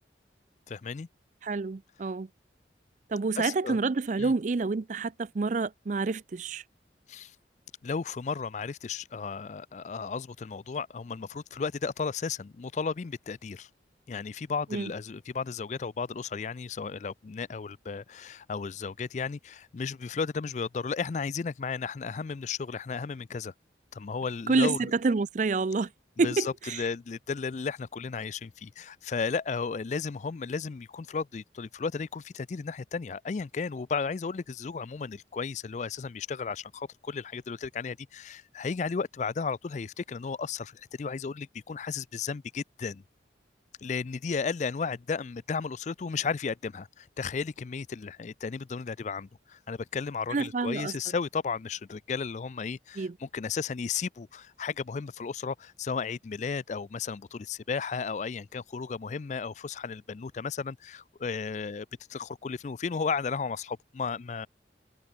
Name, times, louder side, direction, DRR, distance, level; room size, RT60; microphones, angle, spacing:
voice 1, 0.7-1.1 3.4-3.8 4.2-4.3 7.1-7.3 7.8-13.7 14.1-23.5 23.9-24.9 26.2-43.0 43.8-64.5, left 5 dB, 40° left, 0.4 m, -34 dB
voice 2, 1.4-2.3 3.1-6.6 14.7-14.9 24.5-25.9 26.2-26.8 50.3-50.9 53.0-53.1, right 4 dB, 45° right, 0.4 m, -28 dB
head